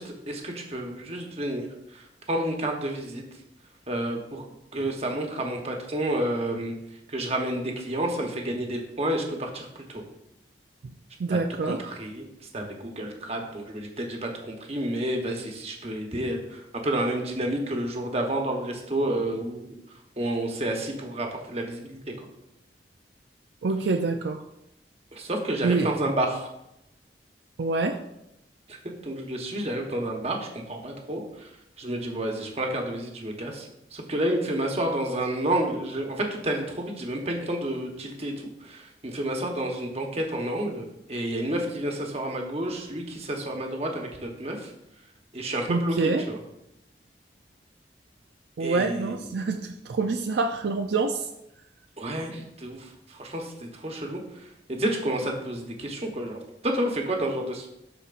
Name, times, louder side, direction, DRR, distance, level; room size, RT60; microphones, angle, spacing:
voice 1, 0.0-3.2 3.9-4.4 4.7-6.7 7.1-10.0 11.3-12.3 12.5-19.7 20.2-22.3 25.1-26.5 28.7-31.5 31.8-44.7 45.3-46.4 48.6-49.2 52.0-57.7, right 1 dB, 35° right, 2 dB, 1.0 m, -30 dB
voice 2, 11.2-11.9 23.6-24.4 25.6-25.9 27.6-28.0 45.7-46.2 48.6-51.3, right 3 dB, 70° right, 5 dB, 0.4 m, -26 dB
12.5 x 4.3 x 2.5 m, 0.83 s
head